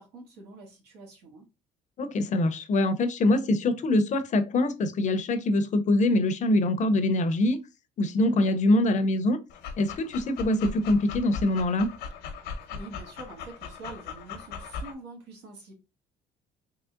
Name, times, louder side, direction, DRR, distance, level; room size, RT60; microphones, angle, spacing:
voice 1, 0.0-1.4 12.7-15.7, right 3 dB, 85° right, 1.6 m, -45 dB
voice 2, 2.0-7.6 8.0-9.4 9.8-11.9, left 1 dB, 45° left, 0.6 m, -24 dB
Dog, 9.5-14.9, left 5 dB, 85° left, 0.9 m, -39 dB
3.7 x 3.1 x 2.4 m
cardioid pair, 110°, 17 cm